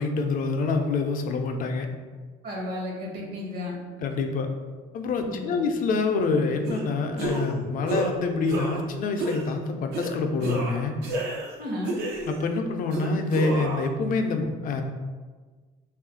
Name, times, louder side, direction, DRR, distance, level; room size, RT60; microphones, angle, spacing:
voice 1, 0.0-1.9 4.0-4.5 4.9-11.0 12.2-14.8, left 3 dB, 55° left, 5 dB, 0.4 m, -26 dB
voice 2, 2.4-3.8 5.2-5.7 11.6-12.0, left 1 dB, 60° right, -1 dB, 0.9 m, -33 dB
sound 1, 6.7-6.8 7.2-7.5 7.9-8.1 8.5-8.9 9.2-9.5 9.9-10.1 10.4-11.5 11.8-12.5 12.9-13.9, right 2 dB, 85° right, 0.6 m, -30 dB
2.6 x 2.4 x 3.7 m, 1.4 s
cardioid pair, 110°, 17 cm